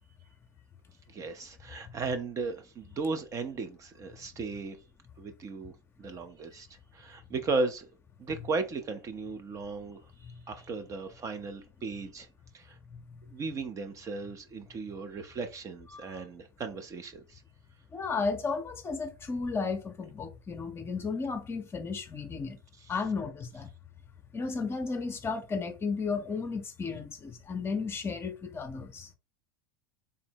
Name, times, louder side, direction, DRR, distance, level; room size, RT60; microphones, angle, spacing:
voice 1, 1.1-4.8 5.2-5.7 6.0-6.7 6.9-7.9 8.2-12.3 12.5-12.8 13.3-17.4 22.8-22.9, right 3 dB, 30° right, 0.5 m, -36 dB
voice 2, 15.9-16.2 17.9-22.6 22.9-23.7 24.3-29.1, left 4 dB, 25° left, 0.6 m, -34 dB
3.8 x 2.0 x 4.3 m
hypercardioid pair, 105°, 11 cm